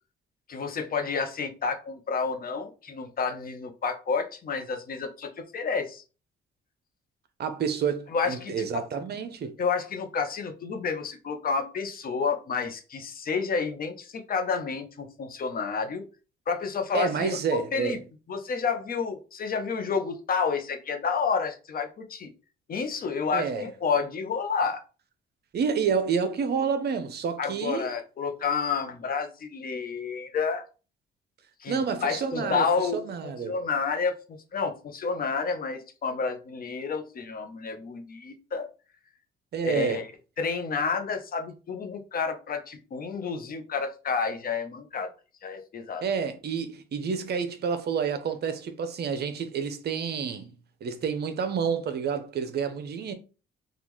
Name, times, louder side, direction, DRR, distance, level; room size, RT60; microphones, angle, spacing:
voice 1, 0.5-6.0 8.1-8.7 9.6-16.0 16.5-18.0 18.3-22.3 22.7-24.8 27.4-30.6 31.6-38.7 39.6-40.0 40.4-45.1 45.4-46.0, left 5 dB, 45° left, 0.7 m, -30 dB
voice 2, 7.4-9.5 16.9-18.0 23.3-23.6 25.5-27.9 31.7-32.7 32.9-33.5 39.5-40.0 46.0-53.1, right 6 dB, 55° right, 0.6 m, -29 dB
3.6 x 2.4 x 3.0 m
cardioid pair, 90°, 20 cm